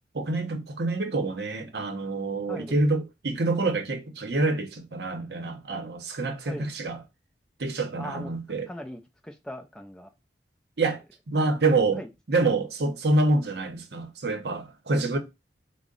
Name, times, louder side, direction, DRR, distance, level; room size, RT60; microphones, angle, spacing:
voice 1, 0.1-7.0 7.6-8.7 10.8-12.0 12.3-15.2, right 2 dB, 65° right, 0.7 m, -27 dB
voice 2, 2.5-2.8 6.4-6.7 8.0-8.3 8.7-10.1 12.0-12.1, equal, 5° left, 0.3 m, -40 dB
3.7 x 2.0 x 3.7 m
head